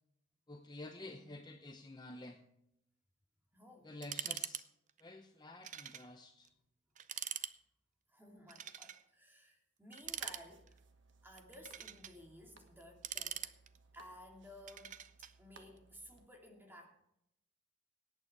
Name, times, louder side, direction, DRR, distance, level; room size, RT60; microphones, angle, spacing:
voice 1, 0.5-2.4 3.8-4.7 5.0-6.5, left 2 dB, 20° left, 5 dB, 0.7 m, -50 dB
voice 2, 1.0-1.3 3.5-3.9 8.1-10.8 11.2-13.5 13.9-17.0, left 1 dB, 10° right, 1 dB, 2.6 m, -56 dB
sound 1, 4.0-4.6 4.9-5.0 5.6-6.1 6.5-6.6 7.0-7.6 8.5-9.0 9.9-10.8 11.4-12.2 12.8-14.0 14.7-15.3, right 10 dB, 40° right, 0.6 m, -43 dB
sound 2, 10.0-16.3, right 5 dB, 65° right, 1.4 m, -59 dB
17.5 x 8.9 x 4.8 m, 0.79 s
head